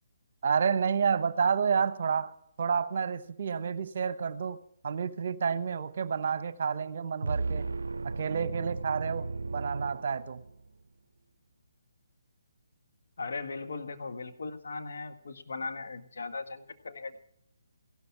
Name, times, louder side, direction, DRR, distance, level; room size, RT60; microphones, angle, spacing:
voice 1, 0.4-2.3 2.6-4.6 4.8-7.7 8.0-10.4, right 6 dB, 50° right, 15 dB, 0.9 m, -29 dB
sound 1, 7.2-10.7, right 3 dB, 75° right, 0.5 m, -35 dB
voice 2, 13.2-17.2, left 4 dB, 65° left, 6 dB, 1.5 m, -38 dB
16.0 x 12.5 x 5.9 m, 0.68 s
figure-of-eight pair, 145°, 0 cm